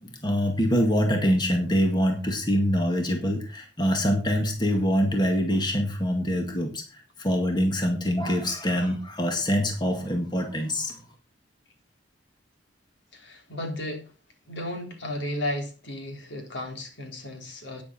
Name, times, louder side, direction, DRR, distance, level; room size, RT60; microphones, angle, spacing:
voice 1, 0.0-11.0, equal, 25° left, 1.9 m, -25 dB
voice 2, 13.1-14.1 14.5-17.8, left 1 dB, 75° left, 3.4 m, -34 dB
11.5 x 9.7 x 4.3 m
head